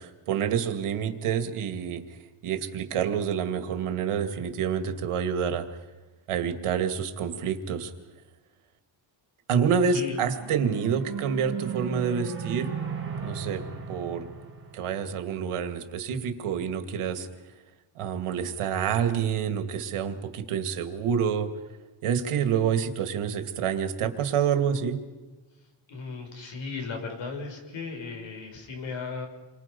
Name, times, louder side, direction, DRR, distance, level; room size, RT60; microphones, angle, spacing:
voice 1, 0.0-2.0 2.4-5.7 6.3-7.9 9.5-12.8 13.2-13.6 13.9-14.3 14.7-17.3 18.0-21.5 22.0-25.0, right 7 dB, 85° right, 7 dB, 2.3 m, -27 dB
voice 2, 9.9-10.3 25.9-29.3, left 4 dB, 65° left, 3 dB, 6.1 m, -36 dB
sound 1, 10.0-15.5, right 6 dB, 25° right, 3.8 m, -37 dB
29.0 x 24.0 x 5.4 m, 1.2 s
cardioid pair, 170°, 50 cm